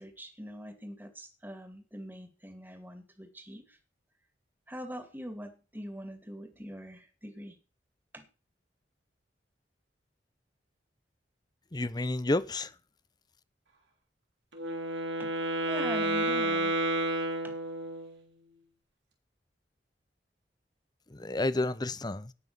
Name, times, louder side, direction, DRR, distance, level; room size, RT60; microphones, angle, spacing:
voice 1, 0.0-3.8 4.7-7.6 8.1-8.3 15.2-15.4 15.7-16.8 17.4-17.6, equal, 10° right, 2.4 m, -43 dB
voice 2, 11.7-12.7 21.1-22.3, left 2 dB, 25° left, 0.8 m, -30 dB
Wind instrument woodwind instrument, 14.5-18.2, right 1 dB, 80° right, 3.6 m, -30 dB
18.0 x 6.1 x 6.9 m
head